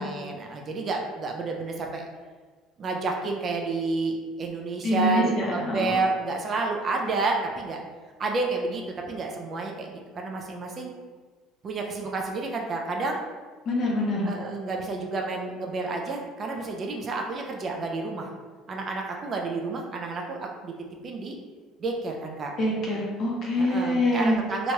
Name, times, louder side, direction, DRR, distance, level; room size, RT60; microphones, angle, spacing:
voice 1, 0.0-2.0 2.8-7.8 8.2-10.9 11.6-13.2 14.2-18.3 18.7-20.7 21.0-21.4 21.8-22.5 23.6-24.7, right 3 dB, 30° right, 1 dB, 0.3 m, -30 dB
voice 2, 4.8-6.0 13.7-14.3 22.6-24.4, left 1 dB, 40° left, -3 dB, 0.7 m, -25 dB
2.9 x 2.2 x 2.9 m, 1.4 s
cardioid pair, 145°, 0 cm